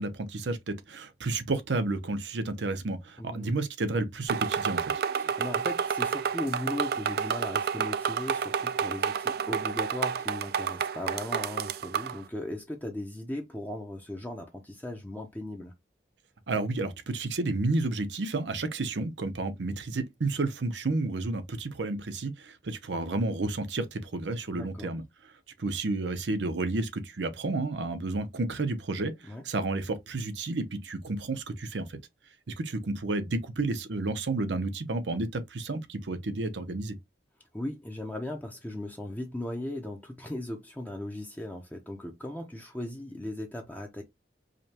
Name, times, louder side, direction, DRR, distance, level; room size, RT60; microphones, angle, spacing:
voice 1, 0.0-5.0 16.5-25.0 25.6-32.0 32.5-37.0, right 2 dB, 90° right, 0.7 m, -31 dB
voice 2, 3.2-3.6 5.2-15.7 24.5-24.9 29.3-29.4 37.5-44.0, left 1 dB, 10° left, 0.6 m, -37 dB
sound 1, 4.3-12.2, right 7 dB, 60° right, 0.3 m, -30 dB
5.0 x 2.2 x 2.8 m
head